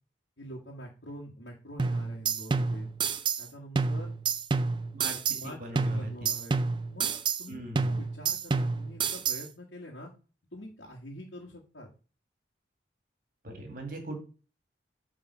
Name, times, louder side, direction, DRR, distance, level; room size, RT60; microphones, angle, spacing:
voice 1, 0.4-2.9 3.4-4.1 5.3-10.1 10.5-11.9, equal, 75° left, -3 dB, 1.7 m, -45 dB
sound 1, 1.8-3.5 3.8-5.5 5.8-7.5 7.8-9.5, right 4 dB, 25° right, 0.4 m, -29 dB
voice 2, 4.9-6.3 7.5-7.9 13.4-14.2, right 1 dB, 50° right, 4 dB, 1.9 m, -40 dB
8.3 x 3.7 x 5.5 m, 0.36 s
head